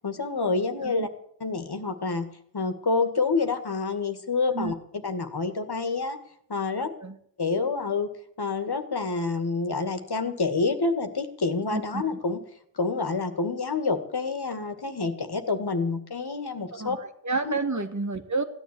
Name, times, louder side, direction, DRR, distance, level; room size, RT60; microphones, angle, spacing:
voice 1, 0.0-1.1 1.4-2.3 2.5-6.2 6.5-6.9 7.4-8.1 8.4-12.4 12.8-17.0 17.4-17.5, left 4 dB, 60° left, 7 dB, 2.1 m, -28 dB
voice 2, 0.8-1.1 4.5-4.7 6.8-7.2 11.7-12.0 16.7-18.4, right 3 dB, 40° right, 6 dB, 2.2 m, -30 dB
16.0 x 10.0 x 8.6 m, 0.63 s
wide cardioid pair, 55°, 43 cm